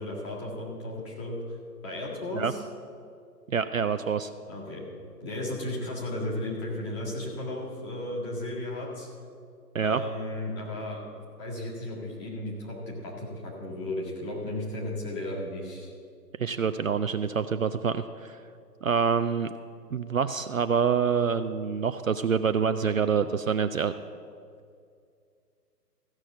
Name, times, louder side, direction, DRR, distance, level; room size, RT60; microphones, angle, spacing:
voice 1, 0.0-1.4 1.8-2.6 4.5-4.8 5.2-9.1 9.8-15.9, left 1 dB, 15° left, -4 dB, 1.8 m, -34 dB
voice 2, 3.5-4.3 9.7-10.0 16.4-18.4 18.8-19.5 19.9-23.9, right 6 dB, 55° right, 10 dB, 0.5 m, -26 dB
14.5 x 6.2 x 7.5 m, 2.3 s
figure-of-eight pair, 150°, 48 cm